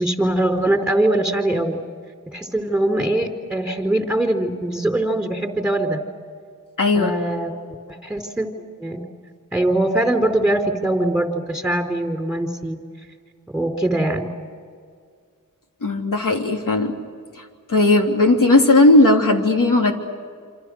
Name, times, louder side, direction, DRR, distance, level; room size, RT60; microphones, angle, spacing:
voice 1, 0.0-1.8 2.3-6.0 6.9-7.5 7.9-8.5 8.8-9.0 9.5-12.8 13.5-14.3, right 1 dB, 5° right, 4 dB, 4.2 m, -22 dB
voice 2, 6.8-7.1 15.8-16.9 17.7-19.9, left 2 dB, 75° left, 2 dB, 3.3 m, -16 dB
28.0 x 27.0 x 6.5 m, 2.1 s
wide cardioid pair, 70°, 32 cm